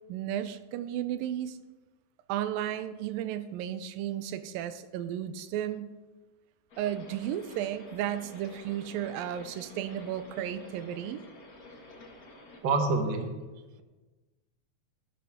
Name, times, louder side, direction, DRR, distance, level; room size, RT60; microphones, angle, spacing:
voice 1, 0.1-1.6 2.3-5.9 6.8-11.2, right 11 dB, 85° right, 12 dB, 2.4 m, -34 dB
sound 1, 6.7-12.6, left 2 dB, 40° left, 1.4 m, -50 dB
voice 2, 12.6-13.3, right 3 dB, 60° right, 4 dB, 1.2 m, -26 dB
14.0 x 11.0 x 3.6 m, 1.2 s
omnidirectional pair, 4.0 m